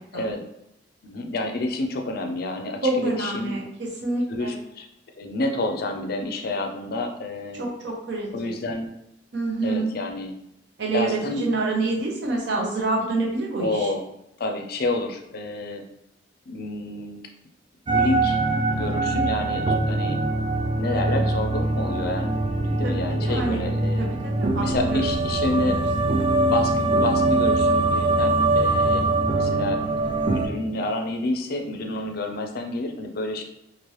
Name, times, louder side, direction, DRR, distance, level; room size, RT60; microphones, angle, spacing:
voice 1, 1.0-3.5 4.3-4.9 5.1-7.7 8.3-8.9 9.6-10.3 10.9-11.4 11.8-11.9 13.6-14.0 14.4-15.8 16.5-17.2 17.9-18.4 18.7-20.2 20.8-24.0 24.6-25.8 26.5-29.1 29.4-33.4, left 2 dB, 55° left, 5 dB, 0.4 m, -29 dB
voice 2, 2.8-4.5 7.6-8.3 9.3-9.9 10.8-13.9 21.0-21.3 22.8-23.6 24.0-24.1 24.4-25.0 25.5-26.2, right 3 dB, 70° right, -1 dB, 0.7 m, -27 dB
sound 1, 17.9-30.5, right 2 dB, 30° right, 0.3 m, -23 dB
3.1 x 2.5 x 3.0 m, 0.84 s
head